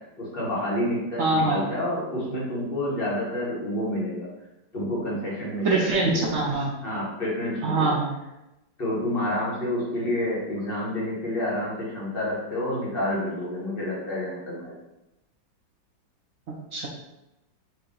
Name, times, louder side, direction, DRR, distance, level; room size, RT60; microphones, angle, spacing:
voice 1, 0.2-4.3 4.7-6.3 6.8-8.0 8.8-14.7, left 1 dB, 35° left, -6 dB, 1.4 m, -29 dB
voice 2, 1.2-1.7 5.6-6.7 7.6-8.1 16.5-16.9, right 3 dB, 70° right, -2 dB, 0.7 m, -24 dB
4.8 x 2.6 x 3.8 m, 0.94 s
omnidirectional pair, 2.0 m